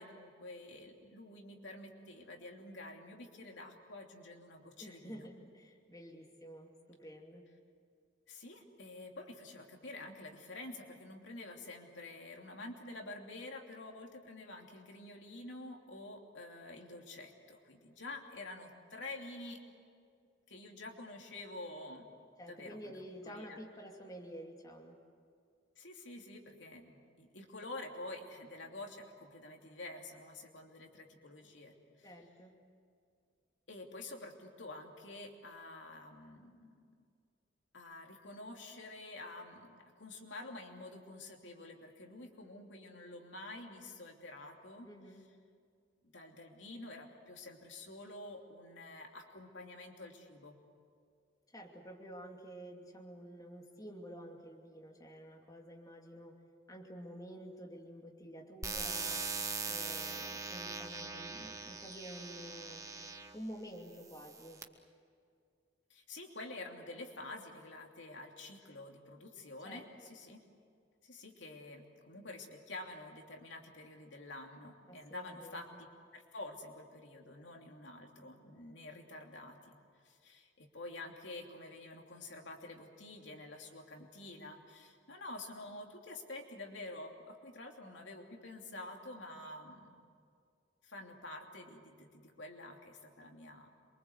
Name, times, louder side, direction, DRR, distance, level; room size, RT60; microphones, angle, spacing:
voice 1, 0.0-5.3 8.3-19.6 20.5-22.1 22.5-23.6 25.8-32.1 33.7-37.1 37.7-44.9 46.0-50.6 65.9-70.4 71.0-75.7 76.1-79.8 80.0-90.1 90.8-93.7, left 2 dB, 75° left, 2 dB, 2.9 m, -48 dB
voice 2, 4.8-7.5 22.4-25.0 32.0-32.6 44.8-45.2 51.5-56.4 56.7-59.3 59.7-62.8 63.3-64.6 69.6-70.1 74.9-75.6, equal, 20° left, 0 dB, 2.7 m, -50 dB
sound 1, 58.6-63.4 64.1-64.6, right 4 dB, 15° right, 1.3 m, -41 dB
27.5 x 24.0 x 8.1 m, 2.2 s
head